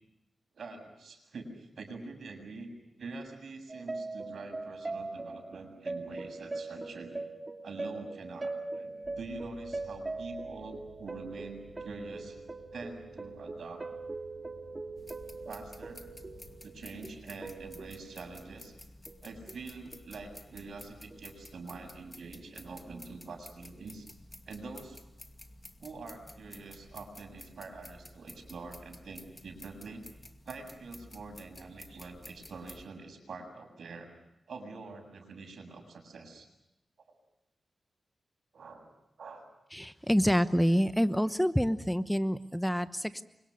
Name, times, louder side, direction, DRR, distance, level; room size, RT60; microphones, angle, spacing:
voice 1, 0.5-2.7 3.0-7.2 7.6-12.4 12.7-13.9 15.5-16.0 16.6-18.7 19.2-24.1 24.5-25.0 25.8-30.0 30.5-34.1 34.5-36.5 38.5-38.9 39.2-39.5, right 3 dB, 70° right, 5 dB, 7.6 m, -45 dB
sound 1, 3.7-18.5 19.1-19.7 19.9-20.1 21.1-21.3, right 3 dB, 30° right, 2.5 m, -41 dB
sound 2, 9.0-16.6, left 4 dB, 90° left, 4.0 m, -56 dB
sound 3, 15.0-32.9, left 1 dB, 20° left, 2.3 m, -52 dB
voice 2, 39.7-43.2, equal, 5° left, 12 dB, 1.0 m, -27 dB
30.0 x 25.5 x 6.6 m, 0.89 s
wide cardioid pair, 110°, 0 cm